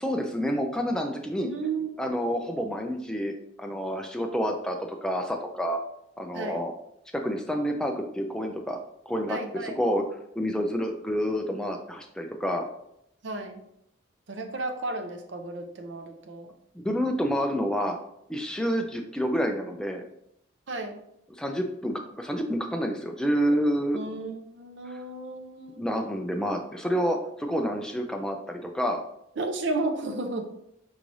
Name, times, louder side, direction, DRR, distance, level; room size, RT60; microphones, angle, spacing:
voice 1, 0.0-1.5 2.0-3.3 3.6-5.8 6.2-6.7 7.1-8.8 9.1-10.0 10.4-12.6 16.7-18.0 18.3-20.0 21.4-24.0 24.9-25.0 25.8-29.0, equal, 5° left, 3 dB, 0.3 m, -28 dB
voice 2, 1.4-1.9 6.3-6.7 9.3-9.7 13.2-13.6 14.3-16.5 20.7-21.0 23.9-25.8 29.4-30.4, right 3 dB, 65° right, 6 dB, 0.5 m, -33 dB
4.6 x 3.2 x 2.6 m, 0.76 s
head